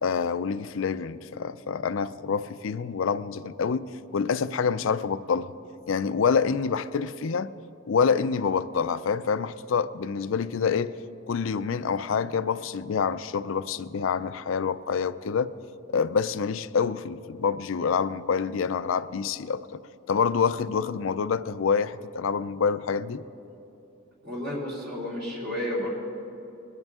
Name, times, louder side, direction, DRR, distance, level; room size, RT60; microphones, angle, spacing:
voice 1, 0.0-5.5 5.9-7.5 7.9-10.9 11.3-15.5 15.9-19.8 20.1-23.2, left 6 dB, 75° left, 14 dB, 0.4 m, -27 dB
voice 2, 24.2-25.9, left 1 dB, 55° right, -5 dB, 2.8 m, -31 dB
22.0 x 10.5 x 3.6 m, 2.9 s
head